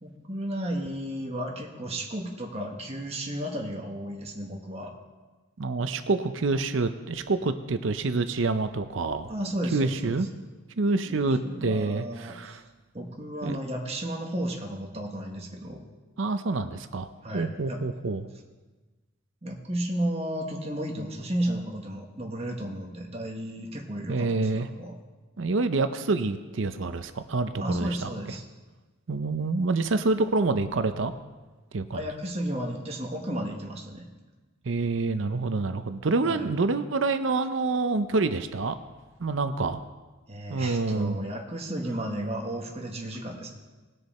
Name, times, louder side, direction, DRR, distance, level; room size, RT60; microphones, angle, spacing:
voice 1, 0.0-4.9 9.3-10.2 11.0-12.6 12.9-15.8 17.2-17.8 19.4-24.9 27.6-28.4 31.9-34.1 36.2-36.5 40.3-43.5, right 1 dB, 30° right, 1 dB, 1.4 m, -33 dB
voice 2, 5.6-9.3 9.7-10.3 10.8-12.6 13.4-13.6 16.2-17.1 17.3-18.3 24.1-24.7 25.4-28.1 29.1-31.1 31.7-32.0 34.7-38.7 39.2-39.8 40.5-41.2, right 3 dB, 65° right, 10 dB, 0.6 m, -27 dB
20.0 x 6.7 x 4.2 m, 1.3 s
head